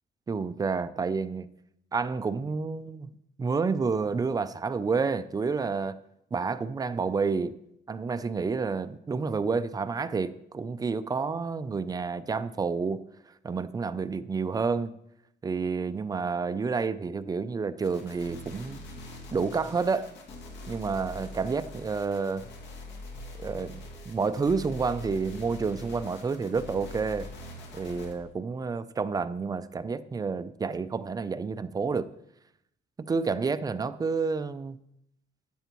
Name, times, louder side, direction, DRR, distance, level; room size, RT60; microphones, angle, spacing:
voice 1, 0.3-1.5 1.9-3.1 3.4-6.0 6.3-7.6 7.9-13.0 13.4-14.9 15.4-18.8 19.3-20.1 20.7-22.5 23.4-27.3 27.7-32.1 33.0-34.8, right 4 dB, 20° right, 0.3 m, -29 dB
sound 1, 17.8-28.1, left 2 dB, 80° left, 2.1 m, -43 dB
12.5 x 9.0 x 3.0 m
cardioid pair, 155°, 19 cm